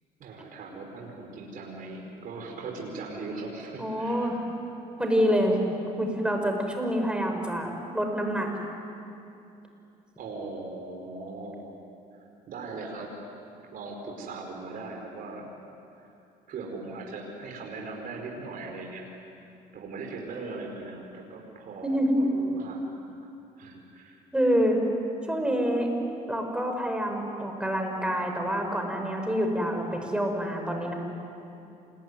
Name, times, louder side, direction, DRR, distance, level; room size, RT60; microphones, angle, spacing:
voice 1, 0.2-4.4 10.2-11.7 12.1-12.2 12.5-13.1 13.7-15.5 16.0-16.1 16.5-19.1 19.7-22.9 23.6-24.2, right 3 dB, 60° right, 0 dB, 4.8 m, -39 dB
voice 2, 3.8-4.4 5.0-5.6 6.0-8.5 21.8-22.2 24.3-24.8 25.3-25.9 26.3-30.9, equal, 5° right, 3 dB, 5.9 m, -27 dB
28.0 x 21.5 x 9.8 m, 2.7 s
cardioid pair, 90°, 16 cm